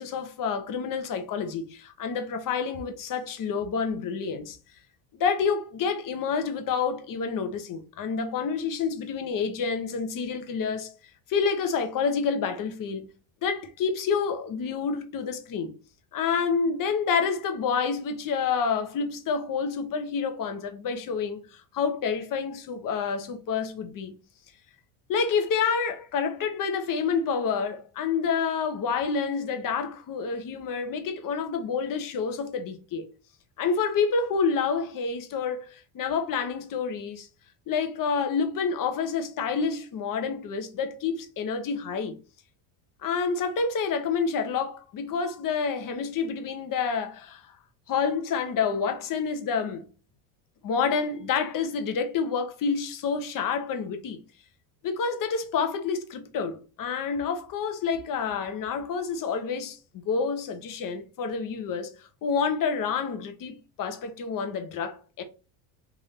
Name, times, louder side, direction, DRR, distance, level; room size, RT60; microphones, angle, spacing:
voice 1, 0.0-4.6 5.1-10.9 11.3-13.1 13.4-15.7 16.1-24.1 25.1-33.1 33.6-37.3 37.7-42.2 43.0-47.4 47.9-49.9 50.6-54.2 54.8-59.8 60.0-61.9 62.2-65.2, left 5 dB, 45° left, 1.0 m, -28 dB
3.7 x 2.6 x 3.5 m
supercardioid pair, 100°, 46 cm